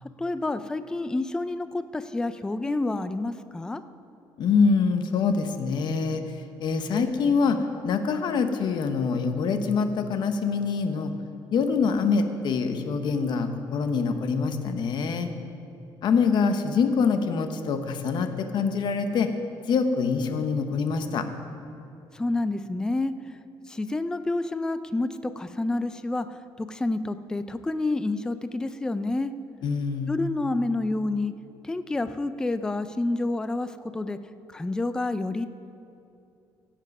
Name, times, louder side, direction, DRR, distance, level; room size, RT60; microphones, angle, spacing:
voice 1, 0.0-3.8 22.1-23.1 23.7-26.3 26.6-29.3 30.1-31.3 31.6-34.2 34.5-35.5, left 2 dB, 10° left, 11 dB, 0.3 m, -28 dB
voice 2, 4.4-6.2 6.6-7.6 7.8-11.1 11.5-15.3 16.0-19.3 19.7-21.3 29.6-30.1, left 5 dB, 55° left, 7 dB, 0.9 m, -25 dB
16.0 x 7.4 x 5.4 m, 2.7 s
cardioid pair, 165°, 9 cm